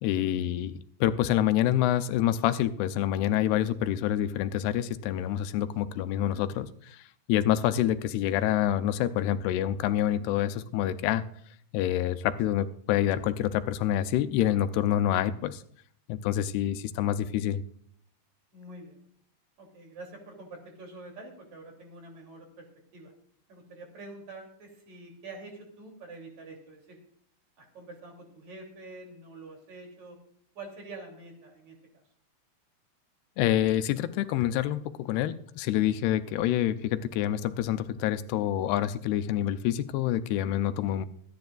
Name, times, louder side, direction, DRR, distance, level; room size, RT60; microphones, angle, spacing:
voice 1, 0.0-11.2 11.7-15.6 16.1-17.6 33.4-41.1, left 12 dB, 85° left, 11 dB, 2.7 m, -27 dB
voice 2, 18.5-19.0 19.6-22.7 22.9-23.1 23.5-27.0 27.6-30.2 30.6-31.8, right 2 dB, 45° right, 2 dB, 4.0 m, -46 dB
24.5 x 10.5 x 2.4 m, 0.62 s
omnidirectional pair, 4.6 m